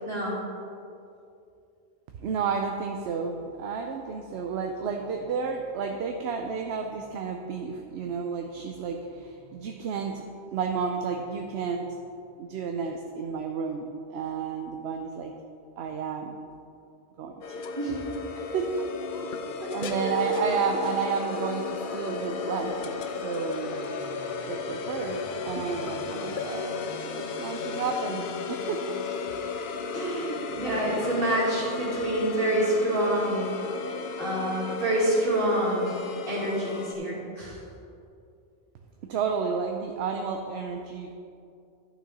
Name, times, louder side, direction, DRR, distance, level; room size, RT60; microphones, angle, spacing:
voice 1, 0.0-0.4 17.8-18.0 19.8-20.4 29.9-33.5 34.2-35.9 36.3-37.6, right 1 dB, 50° right, -6 dB, 2.4 m, -27 dB
voice 2, 2.1-10.2 10.5-11.9 12.4-15.3 15.8-16.4 17.2-17.6 18.5-23.0 23.2-23.8 24.5-26.8 27.0-28.8 39.1-41.1, right 5 dB, 70° right, 3 dB, 0.8 m, -31 dB
sound 1, 17.4-36.9, left 4 dB, 55° left, 0.7 m, -34 dB
11.5 x 6.1 x 4.1 m, 2.5 s
omnidirectional pair, 1.2 m